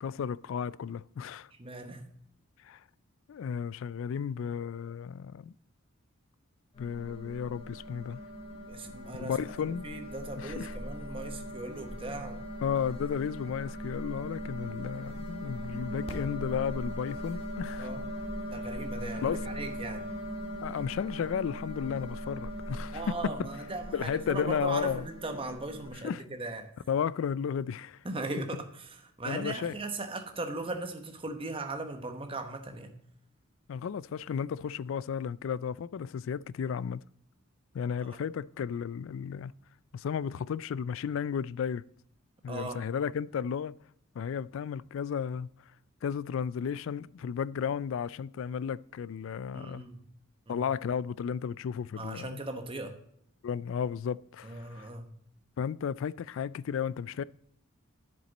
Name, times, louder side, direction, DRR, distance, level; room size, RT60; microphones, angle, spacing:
voice 1, 0.0-1.5 2.6-2.8 3.3-5.5 6.8-8.2 9.2-9.9 10.4-10.8 12.6-17.9 19.2-19.5 20.6-23.2 23.9-25.1 26.0-26.2 26.9-28.0 29.3-29.7 33.7-37.0 37.7-39.5 39.9-41.8 42.4-43.8 44.2-45.5 46.0-49.8 50.5-52.4 53.4-54.9 55.6-57.2, left 7 dB, 65° left, 0.3 m, -33 dB
voice 2, 1.6-2.0 8.7-9.4 9.6-12.4 17.8-18.0 18.5-20.0 22.9-26.7 28.0-33.0 38.1-38.2 42.5-42.8 49.5-50.0 50.5-50.6 52.0-53.0 54.4-55.0, right 2 dB, 25° right, 1.1 m, -38 dB
sound 1, 6.7-25.9, equal, 25° left, 2.2 m, -40 dB
10.0 x 7.4 x 4.0 m
head